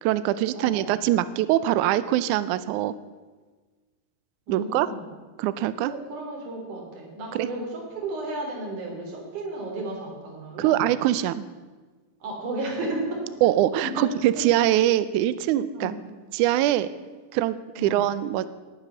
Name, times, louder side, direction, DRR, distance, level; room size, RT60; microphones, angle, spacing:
voice 1, 0.0-2.9 4.5-4.9 5.4-5.9 7.3-7.5 10.6-11.4 13.4-15.9 16.3-16.9 17.3-18.5, right 13 dB, 90° right, 15 dB, 1.7 m, -23 dB
voice 2, 0.5-0.9 4.5-5.0 5.9-10.8 12.2-13.3 13.9-14.1 15.7-16.0 17.8-18.0, right 2 dB, 55° right, 0 dB, 4.8 m, -33 dB
18.5 x 10.0 x 6.9 m, 1.3 s
omnidirectional pair, 4.3 m